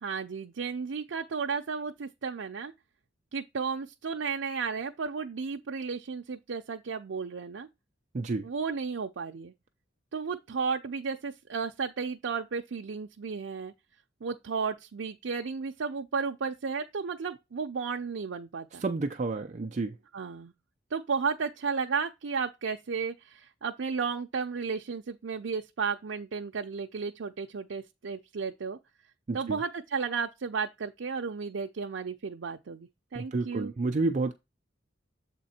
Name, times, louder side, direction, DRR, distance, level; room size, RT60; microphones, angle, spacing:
voice 1, 0.0-2.7 3.3-7.7 8.4-9.5 10.1-13.7 14.2-18.8 20.1-20.5 20.9-28.8 29.3-33.7, right 5 dB, 85° right, 0.5 m, -33 dB
voice 2, 8.1-8.5 18.8-19.9 29.3-29.6 33.2-34.3, right 3 dB, 40° right, 0.4 m, -30 dB
7.5 x 3.7 x 4.3 m
head